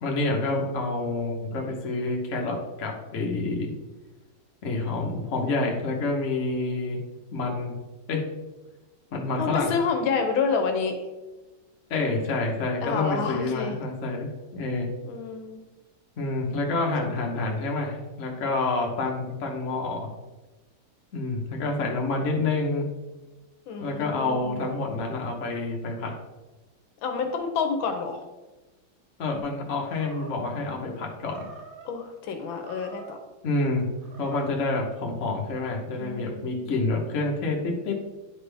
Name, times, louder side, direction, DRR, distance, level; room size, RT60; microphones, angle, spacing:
voice 1, 0.0-3.7 4.6-7.0 7.3-7.8 8.1-8.3 9.1-9.7 11.9-14.9 16.2-20.1 21.1-22.9 23.8-26.2 29.2-31.5 33.4-33.9 34.2-37.9, left 3 dB, 45° left, 0 dB, 1.2 m, -28 dB
voice 2, 9.4-11.0 12.8-13.8 15.0-15.6 23.7-24.7 27.0-28.2 31.8-33.2 35.9-36.7, left 5 dB, 80° left, 5 dB, 1.5 m, -29 dB
Animal, 29.8-30.6 31.2-31.9 32.5-33.3 34.0-34.6, right 4 dB, 90° right, 1.7 m, -46 dB
9.9 x 3.9 x 3.4 m, 1.1 s
omnidirectional pair, 2.2 m